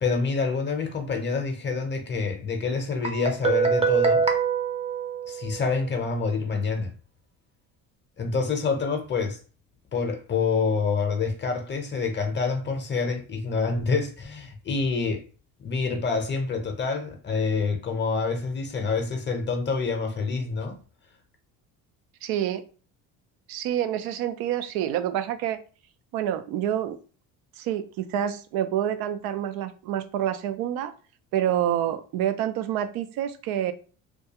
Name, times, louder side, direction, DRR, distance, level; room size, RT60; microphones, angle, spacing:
voice 1, 0.0-4.3 5.3-6.9 8.2-9.4 9.9-15.2 15.6-20.8, left 4 dB, 30° left, 0.6 m, -27 dB
Guitar, 3.0-5.8, right 6 dB, 15° right, 0.5 m, -24 dB
voice 2, 22.2-22.6 23.5-25.6 26.1-27.0 27.6-30.9 31.3-33.7, right 11 dB, 70° right, 0.5 m, -27 dB
2.3 x 2.2 x 2.8 m
supercardioid pair, 90°, 37 cm